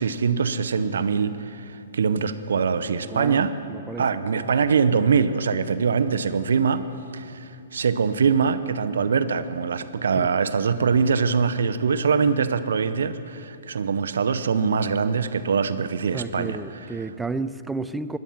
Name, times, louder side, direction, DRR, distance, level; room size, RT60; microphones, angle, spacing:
voice 1, 0.0-3.6 4.0-6.8 7.1-17.0, right 5 dB, 70° right, 13 dB, 0.6 m, -23 dB
voice 2, 3.0-4.1 4.4-4.5 10.1-10.3 16.1-18.2, right 3 dB, 5° right, 13 dB, 0.4 m, -32 dB
13.0 x 10.5 x 5.8 m, 2.6 s
hypercardioid pair, 125°, 0 cm